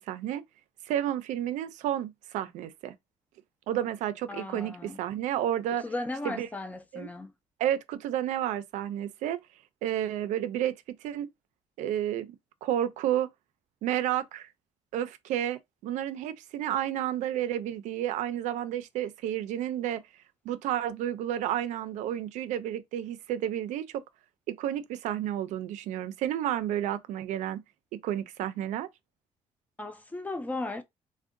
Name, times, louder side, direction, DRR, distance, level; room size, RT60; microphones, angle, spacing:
voice 1, 0.1-0.4 0.8-2.9 3.7-5.8 6.2-6.5 6.9-7.1 7.6-9.4 9.8-11.3 11.8-12.4 12.6-13.3 13.8-14.5 14.9-20.0 20.4-24.0 24.5-27.6 27.9-28.9, right 11 dB, 85° right, 0.4 m, -31 dB
voice 2, 4.3-5.0 5.8-7.3 29.8-30.8, left 2 dB, 15° left, 0.3 m, -36 dB
3.5 x 2.1 x 2.5 m
cardioid pair, 155°, 12 cm